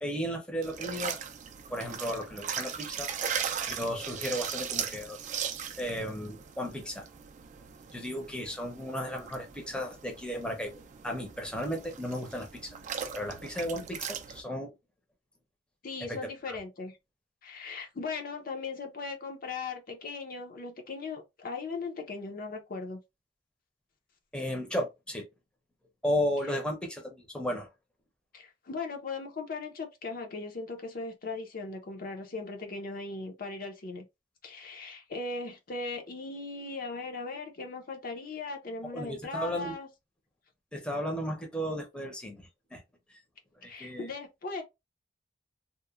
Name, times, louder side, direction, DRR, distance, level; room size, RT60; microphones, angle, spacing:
voice 1, 0.0-1.2 1.7-3.1 3.7-5.2 5.8-7.1 7.9-12.8 13.1-14.7 16.1-16.2 16.5-16.6 24.3-25.3 26.0-27.7 38.9-39.7 40.7-42.8 43.1-43.2 43.6-44.1, equal, 5° left, 0.6 m, -34 dB
sound 1, 0.6-14.4, right 7 dB, 40° right, 0.3 m, -38 dB
voice 2, 15.8-17.0 17.4-23.0 26.5-26.6 28.3-34.0 34.4-39.9 43.6-44.6, left 3 dB, 50° left, 0.5 m, -38 dB
2.9 x 2.0 x 2.3 m
head